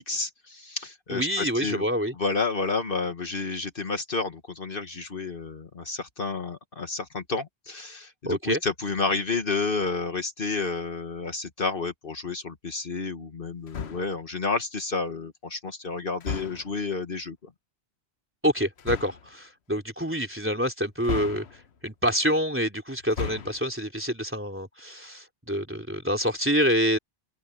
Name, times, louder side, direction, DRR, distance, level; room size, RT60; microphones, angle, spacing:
voice 1, 0.0-1.8 2.2-17.5, left 4 dB, 60° left, 1.6 m, -30 dB
voice 2, 1.1-2.1 8.3-8.6 18.4-27.0, equal, 10° right, 3.6 m, -27 dB
sound 1, 13.7-14.2 16.2-16.8 18.8-19.3 21.0-21.8 23.0-23.7, left 6 dB, 80° left, 1.3 m, -35 dB
open air
omnidirectional pair, 1.1 m